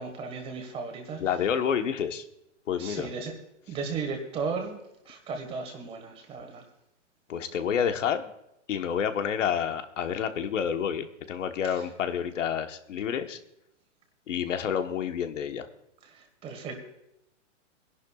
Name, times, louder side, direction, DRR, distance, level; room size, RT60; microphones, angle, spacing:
voice 1, 0.0-1.2 2.8-3.3 3.7-4.8 5.1-6.6 16.1-16.8, right 4 dB, 15° right, 4 dB, 1.7 m, -35 dB
voice 2, 1.2-2.2 2.7-3.1 7.3-8.3 8.7-13.4 14.3-15.7, left 8 dB, 75° left, 8 dB, 1.3 m, -29 dB
22.5 x 11.5 x 2.4 m, 0.85 s
hypercardioid pair, 165°, 37 cm